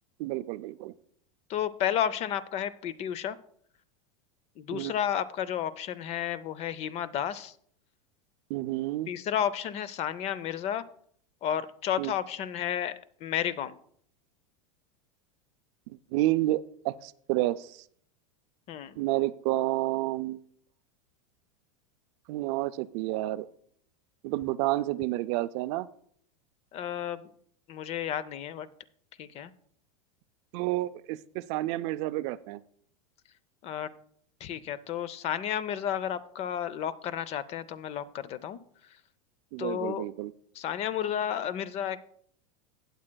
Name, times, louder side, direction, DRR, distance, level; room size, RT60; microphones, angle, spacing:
voice 1, 0.2-0.9 4.7-4.9 8.5-9.1 12.0-12.1 15.9-17.8 19.0-20.4 22.3-23.5 24.2-25.9 30.5-32.6 39.5-40.3, right 17 dB, 55° right, 14 dB, 0.4 m, -30 dB
voice 2, 1.5-3.4 4.6-7.5 9.1-10.8 11.4-13.7 18.7-19.0 26.7-27.3 27.7-28.7 29.2-29.5 33.6-33.9 34.4-38.6 39.6-40.1 40.5-42.0, left 10 dB, 35° left, 17 dB, 0.5 m, -32 dB
17.0 x 7.6 x 2.2 m, 0.62 s
supercardioid pair, 125°, 17 cm